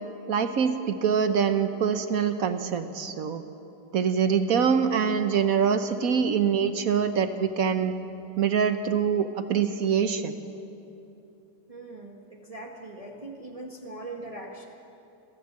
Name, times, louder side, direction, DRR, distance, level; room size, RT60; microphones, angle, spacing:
voice 1, 0.3-3.4 3.9-7.9 8.4-10.4, right 7 dB, 55° right, 9 dB, 1.2 m, -24 dB
voice 2, 11.7-14.7, right 2 dB, 20° right, 0 dB, 1.5 m, -41 dB
29.0 x 13.5 x 7.5 m, 2.8 s
omnidirectional pair, 2.0 m